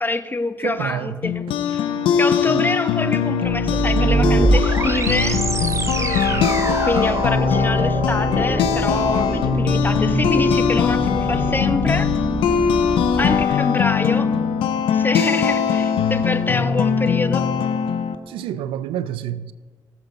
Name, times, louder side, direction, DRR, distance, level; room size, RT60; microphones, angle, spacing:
voice 1, 0.0-1.8 2.2-5.4 6.0-12.1 13.2-14.3 14.9-17.5, left 2 dB, 25° left, 1.1 m, -26 dB
voice 2, 0.6-1.2 2.5-2.8 6.2-6.9 10.1-10.4 13.2-13.4 18.3-19.5, right 11 dB, 85° right, 0.5 m, -29 dB
sound 1, 1.2-18.2, left 7 dB, 85° left, 0.7 m, -21 dB
sound 2, 3.4-13.4, right 3 dB, 35° right, 0.9 m, -24 dB
18.5 x 7.1 x 3.9 m
supercardioid pair, 50°, 9 cm